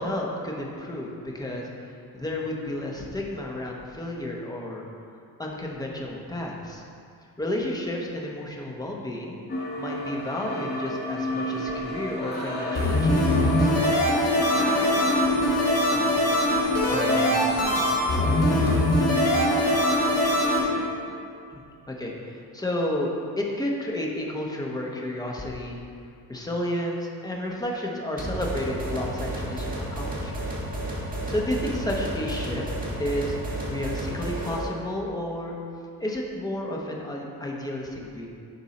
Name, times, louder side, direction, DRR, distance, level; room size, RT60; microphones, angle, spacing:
voice 1, 0.0-1.6 2.1-4.9 5.4-6.8 7.4-9.4 9.8-13.7 15.9-16.1 16.9-18.8 21.5-21.6 21.9-23.1 23.4-25.8 26.3-30.5 31.3-32.7 33.0-35.6 36.0-38.3, left 1 dB, 10° left, -2 dB, 0.9 m, -32 dB
sound 1, 9.5-20.9, equal, 25° left, 2.0 m, -30 dB
sound 2, 12.7-20.6, left 1 dB, 40° left, 1.8 m, -22 dB
sound 3, 28.2-34.7, right 1 dB, 20° right, 1.6 m, -32 dB
11.0 x 4.4 x 4.2 m, 2.4 s
cardioid pair, 150°, 38 cm